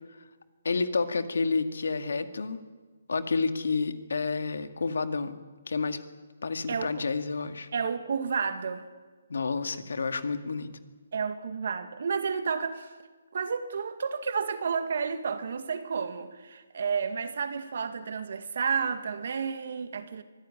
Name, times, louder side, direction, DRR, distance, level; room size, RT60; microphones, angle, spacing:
voice 1, 0.6-2.6 3.1-5.4 5.7-6.0 6.4-7.7 9.3-10.7, left 4 dB, 80° left, 9 dB, 2.1 m, -29 dB
voice 2, 6.7-7.1 7.7-8.9 11.1-12.9 13.3-20.2, right 6 dB, 60° right, 9 dB, 2.1 m, -31 dB
24.0 x 15.5 x 10.0 m, 1.4 s
hypercardioid pair, 165°, 0 cm